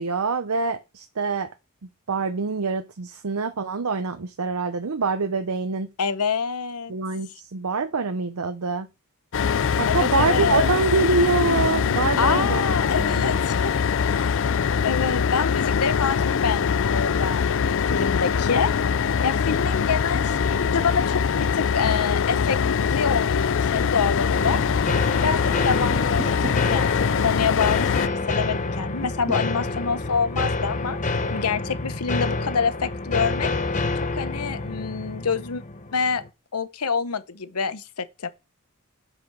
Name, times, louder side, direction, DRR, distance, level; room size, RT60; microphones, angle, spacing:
voice 1, 0.0-1.5 2.1-5.9 6.9-8.9 9.8-13.4, right 4 dB, 75° right, 0.7 m, -25 dB
voice 2, 6.0-6.9 9.9-10.7 12.2-14.4 14.8-18.7 19.2-22.6 22.9-24.6 25.1-27.9 28.3-31.0 31.3-33.5 34.2-35.6 35.9-36.2 36.5-38.3, left 5 dB, 85° left, 0.9 m, -27 dB
sound 1, 9.3-28.1, left 6 dB, 60° left, 0.4 m, -23 dB
sound 2, 24.3-36.3, left 3 dB, 35° left, 0.8 m, -28 dB
sound 3, 25.9-26.7 29.0-29.5, equal, 30° right, 1.4 m, -34 dB
7.8 x 5.8 x 5.9 m
head